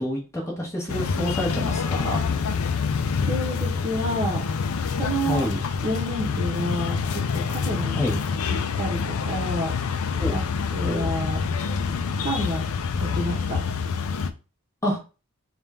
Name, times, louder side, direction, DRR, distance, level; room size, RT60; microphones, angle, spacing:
voice 1, 0.0-2.3 5.3-5.6 7.9-8.2 10.1-10.4 10.8-11.0 14.8-15.0, equal, 15° left, -3 dB, 1.1 m, -28 dB
sound 1, 0.9-14.3, left 5 dB, 85° left, 0.4 m, -27 dB
voice 2, 3.2-4.5 5.0-5.5 5.8-8.0 8.8-9.8 10.3-10.4 10.7-11.4 12.2-12.6 13.0-13.6, equal, 35° right, -5 dB, 0.9 m, -29 dB
3.5 x 2.4 x 4.2 m, 0.32 s
head